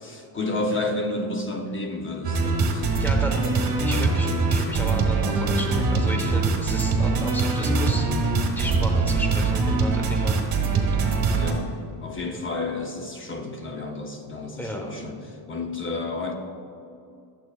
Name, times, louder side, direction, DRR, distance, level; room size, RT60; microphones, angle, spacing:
voice 1, 0.0-3.6 8.6-8.8 11.4-16.3, left 2 dB, 25° left, 3 dB, 0.7 m, -31 dB
sound 1, 2.2-11.5, right 4 dB, 50° right, 1.8 m, -22 dB
voice 2, 3.0-3.4 3.8-10.4 10.7-10.8 14.6-14.9, equal, 5° left, 2 dB, 1.0 m, -34 dB
11.0 x 7.7 x 2.4 m, 2.6 s
cardioid pair, 120°, 45 cm